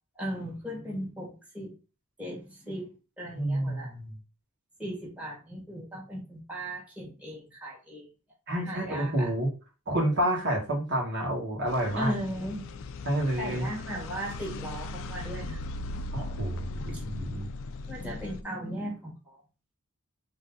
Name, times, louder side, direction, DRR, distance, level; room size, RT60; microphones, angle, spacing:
voice 1, 0.2-1.8 2.2-3.9 4.8-8.1 8.7-9.3 12.0-12.9 13.4-16.0 17.8-19.4, equal, 5° right, -5 dB, 1.9 m, -37 dB
voice 2, 3.3-4.2 8.5-9.5 9.9-12.1 13.0-13.7 16.1-17.5, right 1 dB, 55° right, -2 dB, 1.8 m, -29 dB
sound 1, 11.7-18.4, left 2 dB, 65° left, 0.4 m, -38 dB
4.0 x 3.2 x 4.0 m, 0.33 s
head